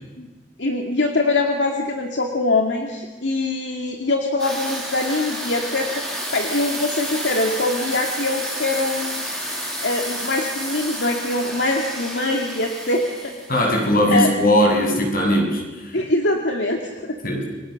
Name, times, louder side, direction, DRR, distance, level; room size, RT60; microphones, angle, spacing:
voice 1, 0.6-9.3 9.8-14.3 15.9-17.4, left 2 dB, 75° left, 2 dB, 2.3 m, -23 dB
sound 1, 4.4-13.9, equal, 5° left, 7.1 m, -30 dB
voice 2, 13.5-16.0 17.2-17.4, equal, 55° left, 1 dB, 6.8 m, -19 dB
29.5 x 24.0 x 6.6 m, 1.2 s
head